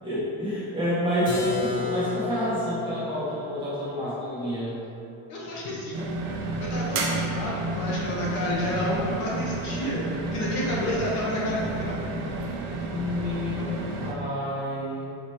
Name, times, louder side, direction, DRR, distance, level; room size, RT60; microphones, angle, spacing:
voice 1, 0.0-4.8 12.9-13.7 14.0-15.1, equal, 15° right, -10 dB, 0.7 m, -29 dB
Keyboard (musical), 1.3-6.9, left 4 dB, 25° left, 0.5 m, -35 dB
voice 2, 5.3-6.0 6.6-10.0 10.3-12.0, left 1 dB, 50° left, -5 dB, 0.9 m, -30 dB
sound 1, 5.9-14.1, right 2 dB, 45° right, 0.5 m, -31 dB
4.3 x 2.8 x 3.2 m, 2.5 s
cardioid pair, 175°, 37 cm